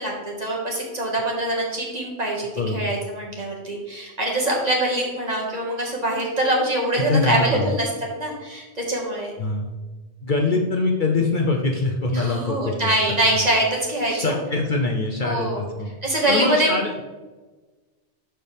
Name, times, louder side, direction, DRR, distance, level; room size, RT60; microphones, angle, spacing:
voice 1, 0.0-7.9 8.2-9.3 12.1-14.4 15.2-15.6 16.0-16.7, right 1 dB, 35° right, -2 dB, 1.8 m, -24 dB
voice 2, 2.6-2.9 7.0-7.7 9.4-9.7 10.2-12.9 13.3-13.4 14.1-15.9 16.3-17.0, left 3 dB, 50° left, 1 dB, 0.8 m, -23 dB
12.0 x 4.4 x 3.4 m, 1.2 s
omnidirectional pair, 1.2 m